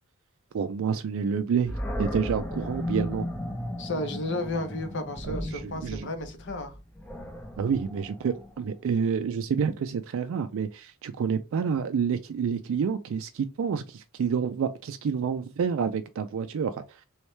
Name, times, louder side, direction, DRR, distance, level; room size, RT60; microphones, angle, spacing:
voice 1, 0.5-3.3 5.2-6.1 7.6-17.0, right 6 dB, 60° right, 0.3 m, -28 dB
Animal, 1.7-8.8, left 1 dB, 5° left, 0.5 m, -35 dB
voice 2, 3.8-6.8, left 2 dB, 55° left, 0.8 m, -33 dB
3.1 x 3.1 x 3.2 m
head